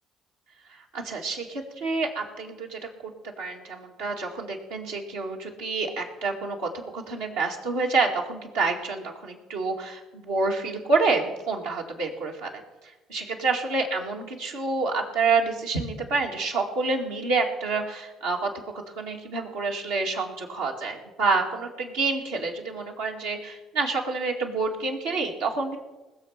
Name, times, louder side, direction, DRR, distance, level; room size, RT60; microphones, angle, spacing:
voice 1, 0.7-12.6 13.1-18.5 18.9-25.8, right 3 dB, 85° right, -1 dB, 2.3 m, -28 dB
20.5 x 7.1 x 5.8 m, 1.1 s
hypercardioid pair, 55°, 0 cm